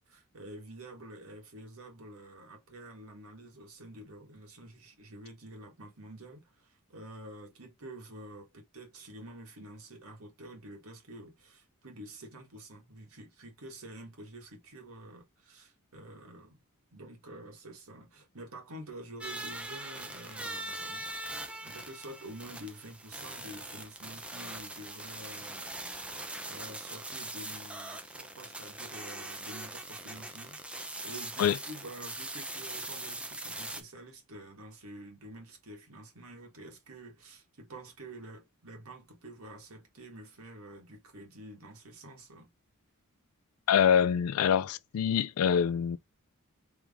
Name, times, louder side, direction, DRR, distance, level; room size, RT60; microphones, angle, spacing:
voice 1, 0.1-16.6 16.9-21.1 21.6-26.2 26.4-42.5, right 1 dB, 70° right, 1.6 m, -48 dB
sound 1, 19.2-33.8, right 1 dB, 5° right, 0.5 m, -41 dB
voice 2, 43.7-46.0, left 8 dB, 75° left, 0.3 m, -25 dB
3.4 x 3.1 x 3.5 m
head